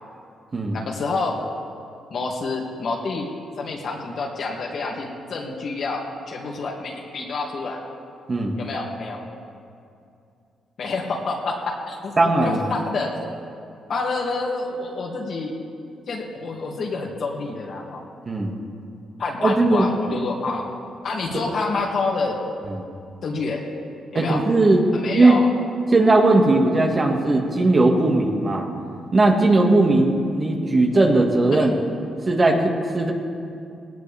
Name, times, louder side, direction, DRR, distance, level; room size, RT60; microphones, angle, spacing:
voice 1, 0.7-1.4 2.1-3.3 3.6-7.8 8.6-9.2 10.8-12.1 12.4-13.1 13.9-15.5 16.1-18.0 19.2-20.7 21.0-22.4 23.2-23.6 24.1-24.4 24.9-25.5 31.5-31.7, left 3 dB, 55° left, -1 dB, 2.4 m, -28 dB
voice 2, 8.3-8.6 12.2-12.6 18.3-18.5 19.4-19.9 21.3-21.4 22.8-22.9 24.1-24.8 25.1-25.4 25.9-28.7 29.1-31.7 32.2-33.1, right 2 dB, 30° right, 1 dB, 1.9 m, -18 dB
18.5 x 17.5 x 3.5 m, 2.5 s
cardioid pair, 95°, 0 cm